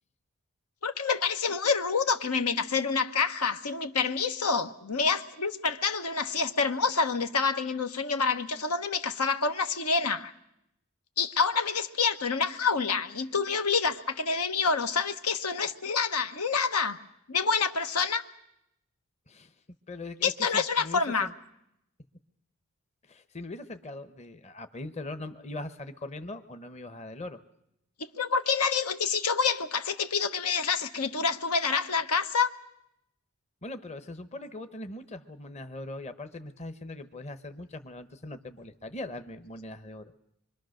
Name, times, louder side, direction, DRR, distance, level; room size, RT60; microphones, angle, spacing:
voice 1, 0.8-10.3 11.2-17.0 17.3-18.2 20.2-21.3 28.1-32.5, left 5 dB, 85° left, 1.3 m, -27 dB
voice 2, 19.9-21.3 23.1-27.4 33.6-40.1, left 2 dB, 30° left, 0.9 m, -41 dB
25.5 x 24.0 x 6.5 m
head